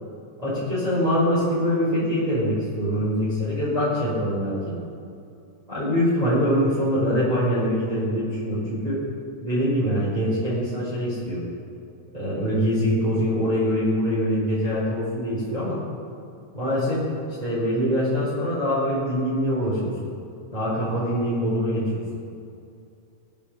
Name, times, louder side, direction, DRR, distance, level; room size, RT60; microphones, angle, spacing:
voice 1, 0.4-4.8 5.7-9.0 9.4-11.4 12.1-15.8 16.5-19.9 20.5-22.0, equal, 10° right, -9 dB, 4.8 m, -24 dB
23.5 x 9.1 x 6.7 m, 2.6 s
omnidirectional pair, 3.6 m